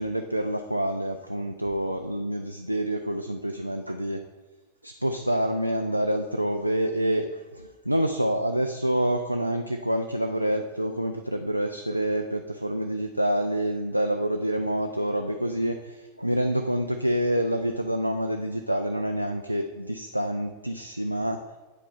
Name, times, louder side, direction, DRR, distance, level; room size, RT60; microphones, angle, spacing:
voice 1, 0.0-4.2 4.8-21.4, right 1 dB, 90° right, 5 dB, 0.3 m, -27 dB
8.8 x 4.8 x 3.5 m, 1.2 s
figure-of-eight pair, 90°, 0 cm